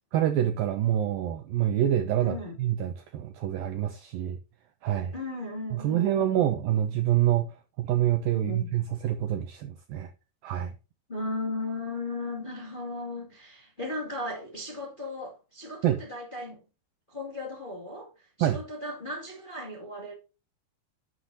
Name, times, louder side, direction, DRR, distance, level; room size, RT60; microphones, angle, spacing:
voice 1, 0.1-4.4 4.8-5.1 5.7-10.1 10.4-10.7 15.8-16.0 18.4-18.6, right 11 dB, 85° right, 2.0 m, -26 dB
voice 2, 2.2-2.6 5.1-6.4 8.3-8.7 11.1-16.6 17.1-20.1, left 2 dB, 20° left, 1.5 m, -36 dB
11.5 x 8.0 x 2.8 m
omnidirectional pair, 5.2 m